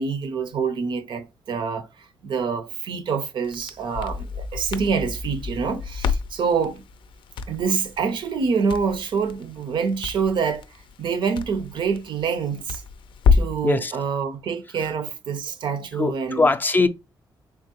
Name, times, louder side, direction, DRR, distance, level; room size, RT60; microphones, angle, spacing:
voice 1, 0.0-1.9 2.2-6.8 7.5-10.6 11.0-12.8 13.3-16.5, right 5 dB, 75° right, 0.6 m, -26 dB
Crackle, 3.4-13.7, left 5 dB, 85° left, 0.4 m, -28 dB
voice 2, 16.0-16.9, left 3 dB, 20° left, 0.4 m, -21 dB
3.6 x 3.0 x 2.8 m
wide cardioid pair, 125°, 8 cm